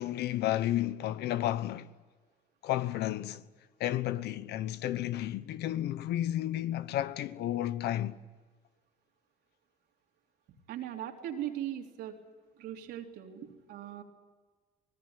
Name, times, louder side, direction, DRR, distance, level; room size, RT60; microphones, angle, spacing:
voice 1, 0.0-1.9 2.6-3.4 3.8-8.2, left 13 dB, 75° left, 1.1 m, -32 dB
voice 2, 10.7-12.1 12.6-14.0, right 11 dB, 80° right, 3.5 m, -39 dB
24.5 x 19.5 x 9.8 m
cardioid pair, 110°, 17 cm